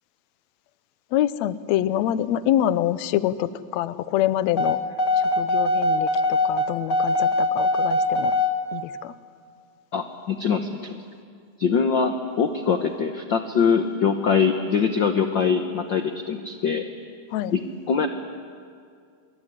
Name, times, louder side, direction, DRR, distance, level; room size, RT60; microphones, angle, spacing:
voice 1, 1.1-4.8 5.2-8.3 8.7-9.1 17.3-17.5, left 12 dB, 70° left, 15 dB, 1.8 m, -25 dB
sound 1, 4.6-8.5, left 2 dB, 35° left, 2.0 m, -22 dB
voice 2, 9.9-11.0 11.6-16.9 17.5-17.6 17.9-18.1, left 6 dB, 85° left, 7 dB, 1.0 m, -23 dB
25.5 x 22.5 x 9.9 m, 2.3 s
omnidirectional pair, 3.8 m